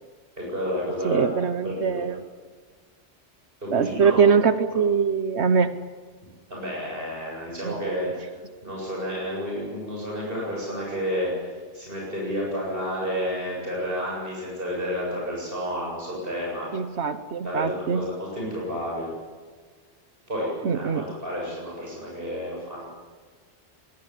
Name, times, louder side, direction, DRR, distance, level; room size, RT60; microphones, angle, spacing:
voice 1, 0.4-1.3 1.6-2.1 3.6-4.2 6.5-8.1 8.6-16.7 17.4-19.1 20.3-22.9, equal, 55° right, -4 dB, 8.1 m, -30 dB
voice 2, 1.0-2.2 3.7-5.7 7.6-8.1 16.7-18.0 20.6-21.0, right 6 dB, 75° right, 11 dB, 1.2 m, -23 dB
22.5 x 21.0 x 10.0 m, 1.5 s
omnidirectional pair, 1.2 m